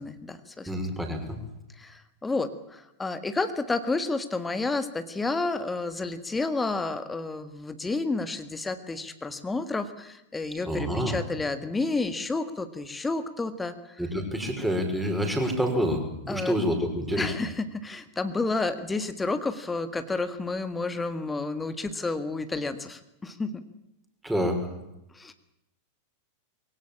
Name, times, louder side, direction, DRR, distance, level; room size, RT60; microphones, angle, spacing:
voice 1, 0.0-0.7 1.8-14.0 16.3-16.5 17.2-23.6 25.1-25.3, left 3 dB, 10° left, 10 dB, 1.7 m, -30 dB
voice 2, 0.7-1.4 10.7-11.2 14.0-17.3 24.2-24.6, equal, 5° right, 3 dB, 5.5 m, -27 dB
22.5 x 17.5 x 8.8 m, 0.87 s
figure-of-eight pair, 90°, 0 cm